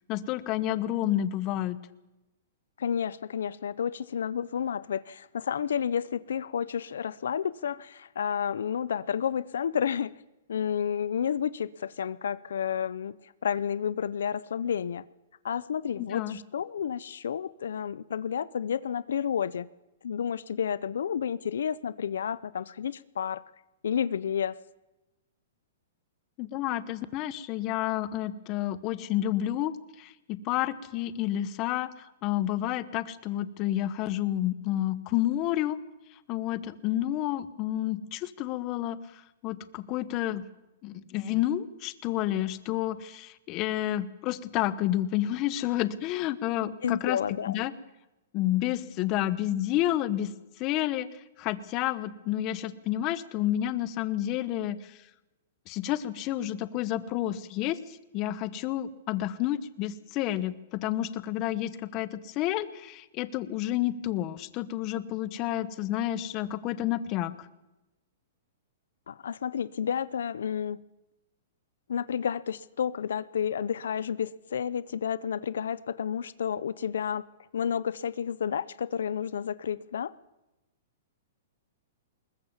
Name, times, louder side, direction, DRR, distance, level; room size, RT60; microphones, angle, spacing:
voice 1, 0.1-1.8 16.0-16.4 26.4-29.7 30.0-35.8 36.3-40.4 40.8-47.2 47.4-47.7 48.3-50.3 50.6-51.1 51.4-55.0 55.7-67.5, left 13 dB, 30° left, 1.0 m, -30 dB
voice 2, 2.8-10.1 10.5-15.0 15.4-19.7 20.0-23.4 23.8-24.6 46.8-47.6 69.1-70.8 71.9-77.3 77.5-80.1, left 8 dB, 85° left, 0.6 m, -31 dB
21.5 x 20.0 x 7.3 m
hypercardioid pair, 160°, 0 cm